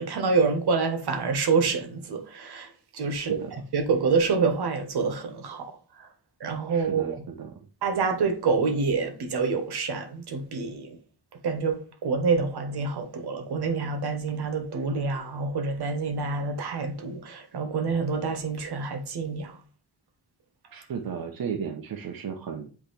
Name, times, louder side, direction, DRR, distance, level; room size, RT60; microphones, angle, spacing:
voice 1, 0.0-3.4 3.7-5.7 6.0-6.1 6.4-7.2 7.8-10.9 11.4-19.6, right 4 dB, 85° right, 1.4 m, -27 dB
voice 2, 3.1-3.5 6.7-7.6 20.7-22.7, right 7 dB, 65° right, 0.8 m, -35 dB
8.0 x 4.1 x 3.3 m
wide cardioid pair, 150°, 38 cm